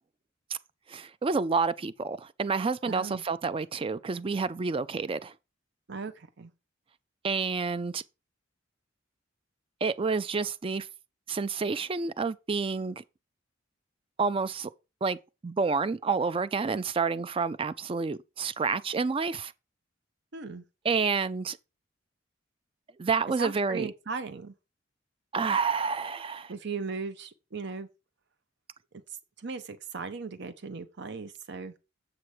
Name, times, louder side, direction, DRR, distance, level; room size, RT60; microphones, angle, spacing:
voice 1, 0.9-5.3 7.2-8.0 9.8-10.9 11.3-13.0 14.2-14.7 15.0-15.2 15.4-19.5 20.8-21.6 23.0-23.9 25.3-26.5, right 4 dB, 30° right, 0.4 m, -29 dB
voice 2, 2.8-3.2 5.9-6.5 20.3-20.6 23.4-24.5 26.5-27.9 29.4-31.7, right 4 dB, 60° right, 0.8 m, -37 dB
7.7 x 5.9 x 4.8 m
head